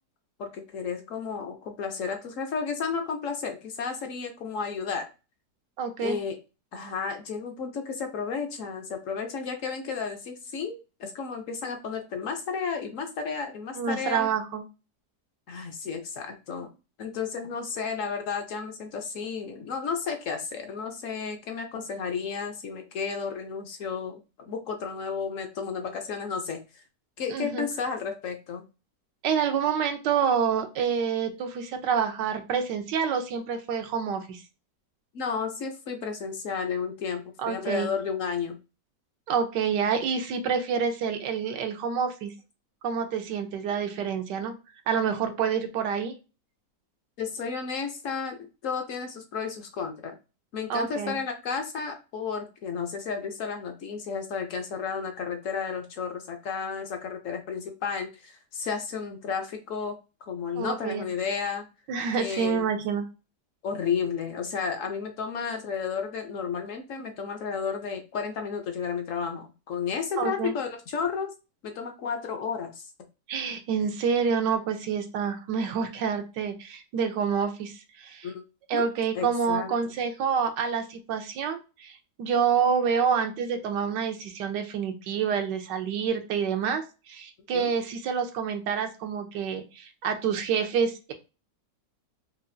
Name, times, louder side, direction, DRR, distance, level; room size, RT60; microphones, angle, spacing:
voice 1, 0.4-5.1 6.0-6.4 6.7-14.3 15.5-16.7 17.0-26.6 27.2-28.6 35.1-38.6 47.2-50.1 50.5-60.0 60.3-61.7 62.2-62.7 63.6-71.3 71.6-72.8 78.2-78.4 78.7-78.9 79.1-79.9 87.5-87.7, left 6 dB, 60° left, 5 dB, 0.9 m, -32 dB
voice 2, 5.8-6.2 13.8-14.6 27.3-27.7 29.2-34.4 37.4-37.9 39.3-42.3 42.8-44.5 44.9-46.1 50.7-51.2 60.5-61.0 61.9-63.1 70.2-70.5 73.3-78.3 78.7-91.1, right 6 dB, 85° right, 6 dB, 1.4 m, -28 dB
4.9 x 2.4 x 2.6 m, 0.30 s
omnidirectional pair, 1.8 m